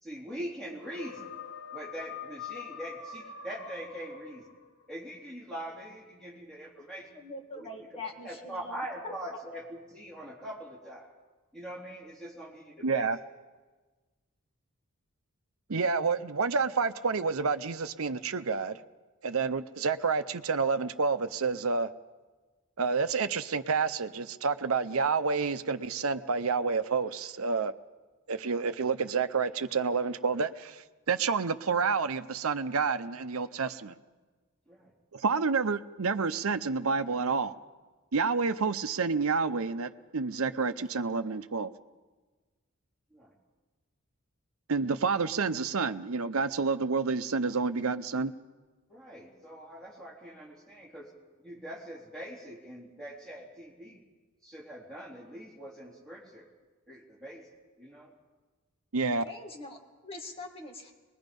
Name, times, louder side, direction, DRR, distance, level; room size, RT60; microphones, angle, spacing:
voice 1, 0.0-1.3 1.7-4.4 4.9-7.1 7.5-11.1 11.5-13.1 34.7-34.9 43.1-43.3 48.9-51.1 51.4-54.0 54.4-56.5 56.9-57.4 57.8-58.1, equal, 5° left, -4 dB, 3.7 m, -43 dB
sound 1, 0.8-4.9, left 6 dB, 60° left, 1.2 m, -44 dB
voice 2, 7.1-9.4 59.2-60.9, left 2 dB, 25° left, 2 dB, 1.8 m, -43 dB
voice 3, 12.8-13.2 15.7-18.8 19.2-21.9 22.8-27.7 28.3-34.0 35.1-37.5 38.1-41.7 44.7-48.3 58.9-59.2, right 4 dB, 80° right, 11 dB, 0.7 m, -29 dB
24.0 x 21.0 x 5.3 m, 1.3 s
head